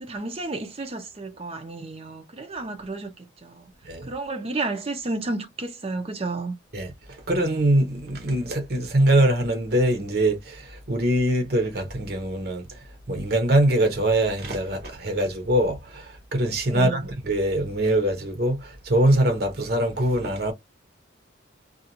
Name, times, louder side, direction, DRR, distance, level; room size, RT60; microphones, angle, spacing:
voice 1, 0.0-3.1 3.4-3.6 4.1-6.6 16.7-17.1, right 3 dB, 30° right, 0.5 m, -31 dB
voice 2, 7.3-12.7 13.1-20.5, right 1 dB, 55° right, 0.8 m, -23 dB
2.5 x 2.2 x 2.7 m
head